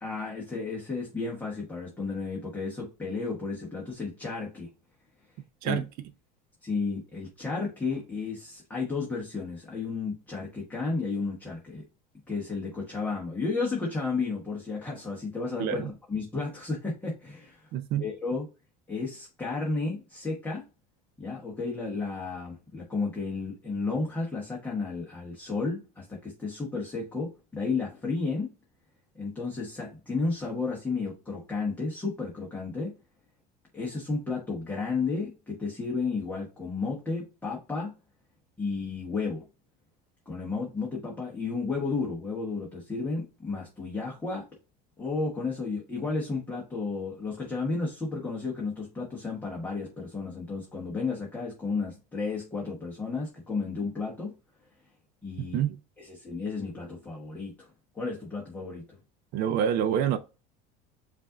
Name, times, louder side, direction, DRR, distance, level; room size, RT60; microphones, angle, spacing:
voice 1, 0.0-4.7 5.6-5.8 6.6-11.8 12.3-17.6 18.0-18.5 18.9-20.6 21.2-28.5 29.2-32.9 33.7-37.9 38.6-39.4 40.3-44.4 45.0-54.3 55.2-55.6 56.0-57.7 57.9-58.8, left 4 dB, 10° left, 1.0 m, -32 dB
voice 2, 5.6-6.1 15.6-15.9 17.7-18.1 55.4-55.8 59.3-60.2, right 9 dB, 50° right, 0.5 m, -27 dB
5.4 x 2.6 x 3.6 m
cardioid pair, 150°, 20 cm